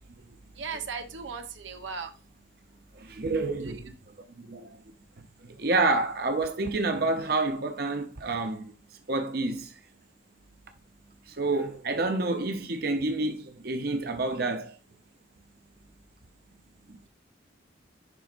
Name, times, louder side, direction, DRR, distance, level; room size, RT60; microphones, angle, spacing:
voice 1, 0.6-2.1 3.6-3.8, right 5 dB, 80° right, 0.9 m, -37 dB
voice 2, 2.9-4.8 5.2-8.7 9.1-9.8 11.3-14.8 16.9-17.0, right 2 dB, 55° right, 0.8 m, -29 dB
11.0 x 4.1 x 2.6 m
head